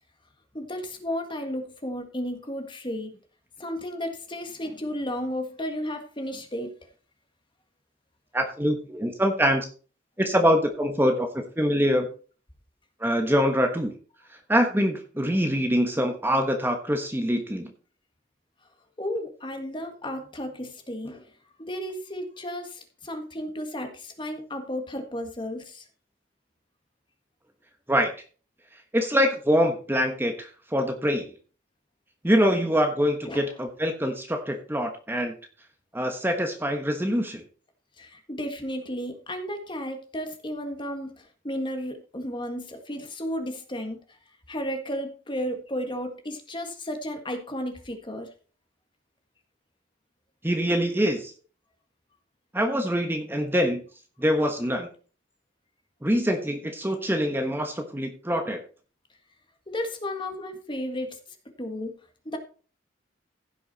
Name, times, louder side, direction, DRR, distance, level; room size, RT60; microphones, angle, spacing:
voice 1, 0.5-3.1 3.6-6.7 19.0-21.3 21.7-25.8 33.2-33.4 38.0-44.0 44.5-48.3 59.7-61.2 61.6-61.9 62.2-62.4, equal, 25° left, 6 dB, 1.7 m, -33 dB
voice 2, 8.3-9.7 10.2-12.1 13.0-13.9 14.5-17.7 27.9-28.1 28.9-31.3 32.2-35.3 35.9-37.4 50.4-51.3 52.5-53.8 54.2-54.9 56.0-58.6, equal, 10° right, 5 dB, 1.2 m, -24 dB
15.5 x 6.2 x 4.1 m, 0.38 s
head